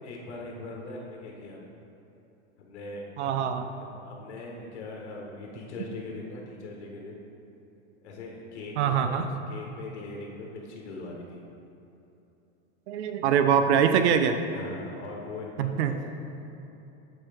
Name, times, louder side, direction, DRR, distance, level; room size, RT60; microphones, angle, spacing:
voice 1, 0.0-1.6 2.6-3.5 3.8-7.2 8.0-9.2 9.5-11.5 14.5-16.1, left 2 dB, 85° left, -1 dB, 1.3 m, -41 dB
voice 2, 3.2-3.7 8.8-9.3 12.9-14.4 15.6-15.9, right 8 dB, 80° right, 8 dB, 0.6 m, -23 dB
7.3 x 5.5 x 3.5 m, 2.9 s
supercardioid pair, 170°, 33 cm